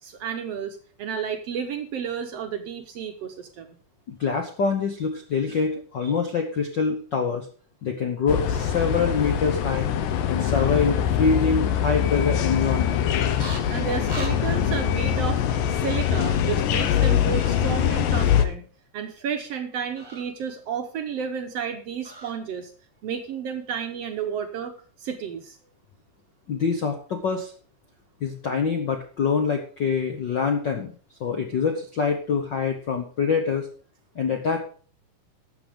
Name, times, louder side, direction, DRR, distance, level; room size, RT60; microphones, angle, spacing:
voice 1, 0.0-3.8 13.5-15.4 15.7-18.6 18.9-22.7 23.0-24.7 25.0-25.6, right 7 dB, 65° right, 6 dB, 1.7 m, -32 dB
voice 2, 4.1-7.5 7.8-9.9 10.3-13.2 17.5-17.6 26.5-27.5 28.2-30.9 31.2-33.7 34.1-34.6, left 5 dB, 65° left, 5 dB, 1.1 m, -25 dB
sound 1, 8.3-18.5, left 9 dB, 85° left, 2.6 m, -23 dB
sound 2, 13.4-13.6 14.0-14.3 17.2-17.5 19.9-20.2 22.0-22.3, right 2 dB, 15° right, 0.9 m, -38 dB
13.0 x 7.7 x 5.1 m, 0.42 s
omnidirectional pair, 3.7 m